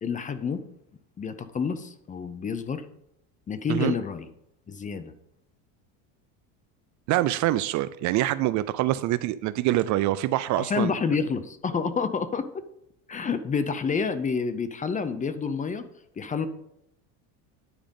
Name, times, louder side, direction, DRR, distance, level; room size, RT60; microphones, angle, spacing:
voice 1, 0.0-0.6 1.2-2.9 3.5-4.3 4.7-5.1 10.6-12.6 13.1-15.8 16.2-16.5, left 5 dB, 20° left, 0.5 m, -29 dB
voice 2, 7.1-10.9, right 15 dB, 50° right, 0.4 m, -25 dB
9.8 x 5.0 x 5.2 m
cardioid pair, 130°, 38 cm